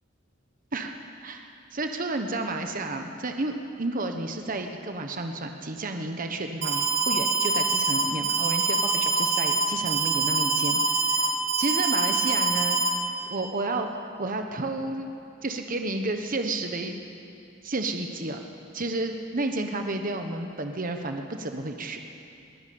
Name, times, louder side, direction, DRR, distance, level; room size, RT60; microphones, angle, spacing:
voice 1, 0.7-1.4 1.7-12.8 13.3-15.1 15.4-17.0 17.6-18.4 18.7-22.0, right 2 dB, 45° right, 5 dB, 1.2 m, -31 dB
Alarm, 6.6-12.9, right 3 dB, 85° right, 5.2 m, -24 dB
22.0 x 17.5 x 8.6 m, 2.6 s
head